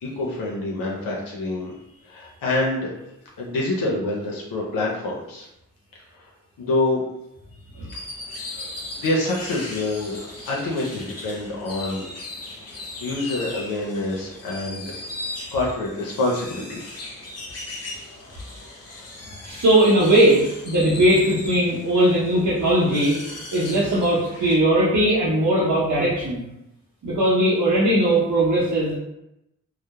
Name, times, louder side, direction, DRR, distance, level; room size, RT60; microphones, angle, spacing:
voice 1, 0.0-1.7 2.0-2.9 3.4-5.5 6.1-6.2 6.6-7.0 7.7-8.1 8.9-12.0 13.0-15.0 15.5-16.8, left 2 dB, 85° left, -3 dB, 0.5 m, -26 dB
sound 1, 7.9-24.6, left 2 dB, 50° left, 0.8 m, -38 dB
voice 2, 19.4-23.2 23.5-26.5 27.0-29.0, right 1 dB, 65° right, -8 dB, 0.8 m, -19 dB
2.2 x 2.0 x 2.8 m, 0.86 s
cardioid pair, 45°, 33 cm